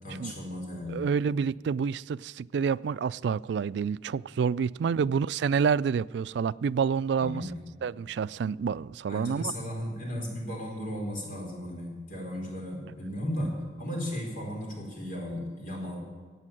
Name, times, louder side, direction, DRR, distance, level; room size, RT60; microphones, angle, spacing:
voice 1, 0.0-1.0 4.8-5.0 7.2-7.6 9.1-16.0, equal, 50° left, 4.5 m, -35 dB
voice 2, 0.9-7.5 7.8-9.5, right 6 dB, 70° right, 0.3 m, -28 dB
16.0 x 8.6 x 7.7 m
head